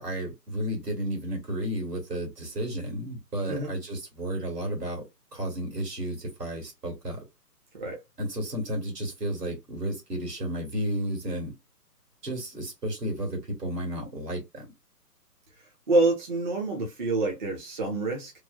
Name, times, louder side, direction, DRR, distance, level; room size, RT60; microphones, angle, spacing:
voice 1, 0.0-7.2 8.2-11.5 12.2-14.7, right 1 dB, 70° right, 1.7 m, -32 dB
voice 2, 15.9-18.3, right 2 dB, 30° right, 0.6 m, -26 dB
3.1 x 2.1 x 2.2 m
figure-of-eight pair, 135°, 49 cm